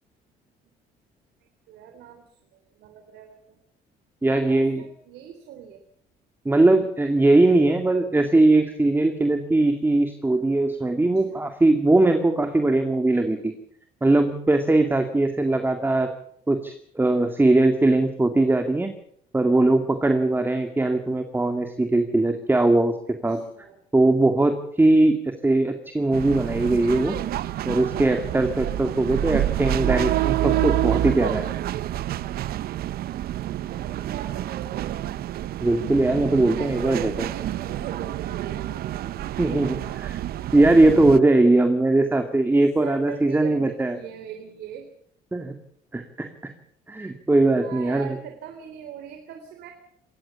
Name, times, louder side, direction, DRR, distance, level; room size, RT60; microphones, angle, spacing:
voice 1, 1.7-2.2 2.5-3.6 4.3-5.8 11.2-11.5 23.3-23.8 30.9-31.3 33.5-35.0 36.6-39.2 39.5-39.6 40.7-40.8 42.8-44.9 47.6-49.7, right 9 dB, 80° right, 5 dB, 3.5 m, -41 dB
voice 2, 4.2-4.8 6.5-13.5 14.0-16.1 16.5-18.9 19.3-22.9 23.2-23.4 23.9-27.2 27.7-31.5 35.6-37.3 39.4-39.8 40.0-40.2 40.5-44.0 45.3-45.5 45.9-46.3 46.9-48.2, right 2 dB, 10° right, 6 dB, 2.2 m, -20 dB
sound 1, 26.1-41.2, right 13 dB, 65° right, 0.8 m, -28 dB
23.5 x 19.0 x 7.1 m, 0.67 s
cardioid pair, 110°, 17 cm